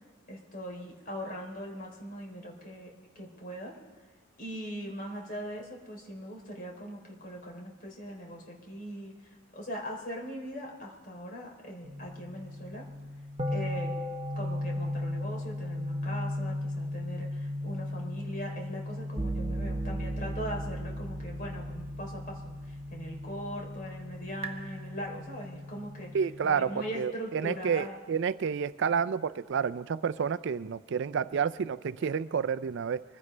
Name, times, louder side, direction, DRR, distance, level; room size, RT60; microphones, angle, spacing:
voice 1, 0.3-3.8 4.4-12.9 13.5-13.9 14.3-26.2 26.4-28.0, equal, 45° left, 0 dB, 3.5 m, -40 dB
sound 1, 11.8-26.9, left 1 dB, 30° right, 1.1 m, -36 dB
voice 2, 26.1-33.0, right 6 dB, 60° right, 15 dB, 0.4 m, -30 dB
24.5 x 15.5 x 3.3 m, 1.3 s
head